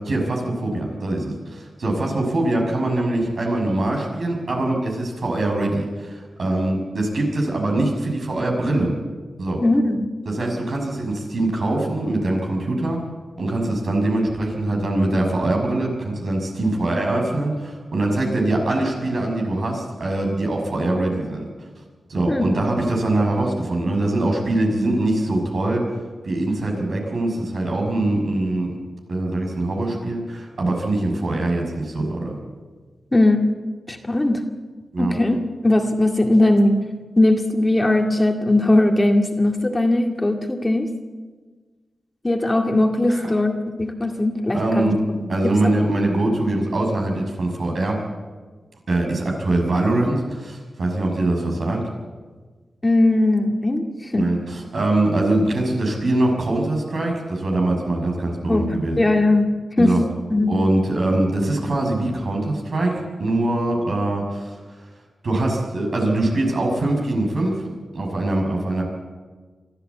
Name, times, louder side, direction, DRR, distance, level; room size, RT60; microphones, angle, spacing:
voice 1, 0.0-8.9 9.4-9.6 10.2-13.0 13.4-21.5 22.1-25.8 26.2-28.7 29.1-32.4 34.9-35.1 43.1-43.3 44.5-45.0 45.3-48.0 48.9-51.9 54.2-59.1 59.8-60.0 60.5-64.6 65.2-68.8, right 2 dB, 65° right, 1 dB, 6.2 m, -23 dB
voice 2, 9.6-10.1 22.3-22.5 33.1-33.5 33.9-34.4 35.0-36.8 37.2-40.9 42.2-45.3 45.6-45.9 52.8-54.3 58.5-58.7 59.0-59.5 59.8-60.0 60.3-60.5, left 1 dB, 25° left, 3 dB, 2.1 m, -19 dB
24.0 x 13.5 x 8.3 m, 1.4 s
cardioid pair, 75°, 0 cm